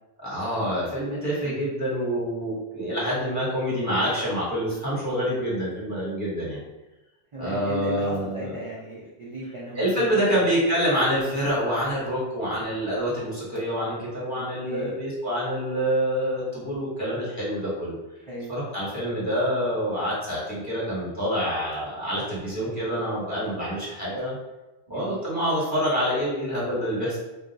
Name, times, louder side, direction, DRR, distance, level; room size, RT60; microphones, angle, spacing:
voice 1, 0.2-6.6 7.4-8.5 9.8-18.0 18.5-24.4 24.9-27.2, equal, 15° left, -9 dB, 1.2 m, -26 dB
voice 2, 7.3-10.5 14.3-14.9 18.3-18.5 24.9-25.2, equal, 45° right, -6 dB, 0.4 m, -36 dB
2.4 x 2.4 x 3.9 m, 1.0 s
omnidirectional pair, 1.2 m